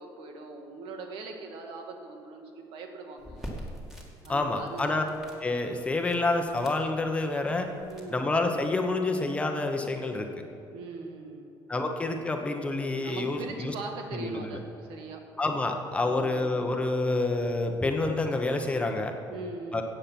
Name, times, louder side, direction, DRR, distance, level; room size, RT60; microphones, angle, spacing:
voice 1, 0.0-3.5 4.2-5.2 7.8-8.2 10.7-11.5 13.0-15.2 16.0-16.4 19.3-19.8, right 3 dB, 80° right, 3 dB, 1.9 m, -41 dB
sound 1, 3.2-8.7, equal, 5° right, 2.2 m, -46 dB
voice 2, 4.3-5.0 5.4-7.7 8.1-10.3 11.7-13.7 14.1-14.5 15.4-19.1 19.7-19.8, left 2 dB, 15° left, 4 dB, 1.0 m, -28 dB
15.0 x 8.9 x 5.9 m, 2.8 s
cardioid pair, 155°, 9 cm